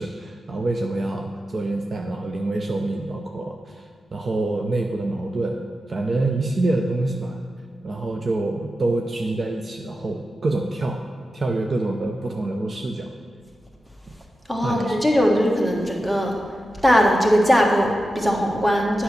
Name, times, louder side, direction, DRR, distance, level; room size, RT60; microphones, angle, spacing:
voice 1, 0.0-5.6 5.9-7.4 7.8-11.1 11.3-13.1 14.6-15.0, right 2 dB, 45° right, 3 dB, 0.6 m, -26 dB
voice 2, 14.5-16.3 16.8-19.0, equal, 10° right, 0 dB, 1.5 m, -19 dB
8.1 x 5.6 x 6.6 m, 2.1 s
cardioid pair, 85°, 0 cm